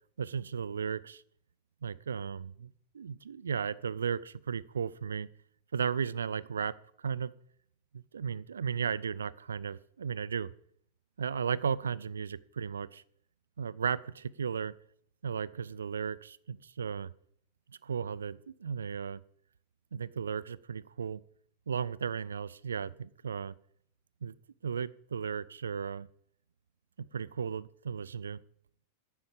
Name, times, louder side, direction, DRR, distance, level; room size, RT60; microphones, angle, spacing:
voice 1, 0.2-1.2 1.8-5.3 5.7-7.3 7.9-10.5 11.2-13.0 13.6-14.7 15.2-17.1 17.8-19.2 19.9-21.2 21.7-23.5 24.2-24.3 24.6-26.1 27.1-28.4, right 7 dB, 70° right, 20 dB, 0.4 m, -35 dB
9.3 x 8.5 x 7.2 m, 0.67 s
figure-of-eight pair, 90°, 0 cm